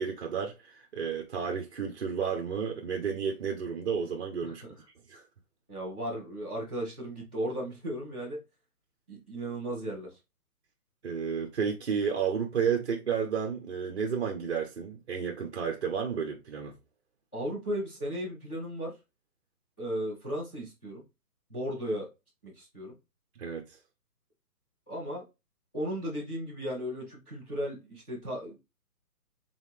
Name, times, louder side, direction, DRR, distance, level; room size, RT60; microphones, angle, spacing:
voice 1, 0.0-4.6 5.1-5.2 11.0-16.8 23.4-23.7, right 6 dB, 45° right, 0.7 m, -32 dB
voice 2, 4.4-4.7 5.7-8.4 9.1-10.1 17.3-18.9 19.8-21.0 21.5-22.1 22.4-23.0 24.9-25.2 25.7-28.6, equal, 5° left, 0.6 m, -35 dB
4.0 x 3.6 x 3.1 m
hypercardioid pair, 155°, 47 cm